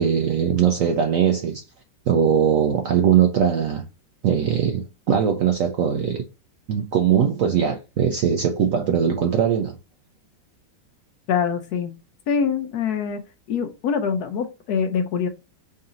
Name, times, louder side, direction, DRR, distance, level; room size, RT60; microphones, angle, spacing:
voice 1, 0.0-1.6 2.1-3.8 4.2-6.2 6.7-9.8, right 8 dB, 70° right, 0.8 m, -20 dB
voice 2, 11.3-11.9 12.3-13.2 13.5-15.3, left 6 dB, 70° left, 1.0 m, -24 dB
3.9 x 2.7 x 3.7 m
omnidirectional pair, 1.9 m